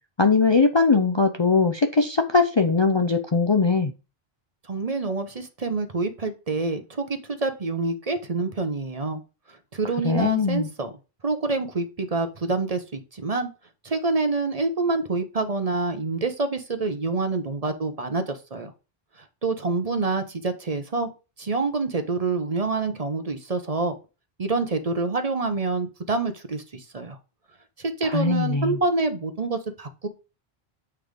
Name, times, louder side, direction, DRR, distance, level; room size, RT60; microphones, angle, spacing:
voice 1, 0.2-3.9 10.0-10.7 28.0-28.8, left 4 dB, 35° left, 5 dB, 0.5 m, -20 dB
voice 2, 4.7-9.2 9.7-10.9 11.2-13.5 13.8-18.7 19.4-21.1 21.4-24.0 24.4-27.2 27.8-30.1, right 3 dB, 40° right, 8 dB, 0.9 m, -27 dB
8.5 x 3.5 x 5.1 m, 0.31 s
omnidirectional pair, 1.1 m